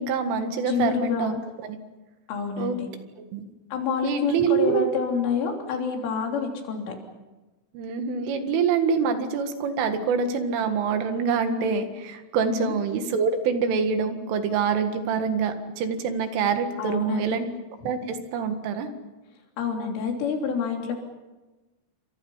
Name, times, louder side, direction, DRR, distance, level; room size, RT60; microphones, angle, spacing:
voice 1, 0.0-1.3 2.6-2.8 3.3-3.4 4.0-4.9 7.7-17.5 17.8-18.9, right 6 dB, 80° right, 7 dB, 4.4 m, -25 dB
voice 2, 0.6-1.4 2.3-2.9 3.7-7.0 12.5-12.7 16.8-17.4 19.6-20.9, left 6 dB, 80° left, 1 dB, 5.8 m, -28 dB
29.0 x 25.5 x 5.7 m, 1.1 s
omnidirectional pair, 5.6 m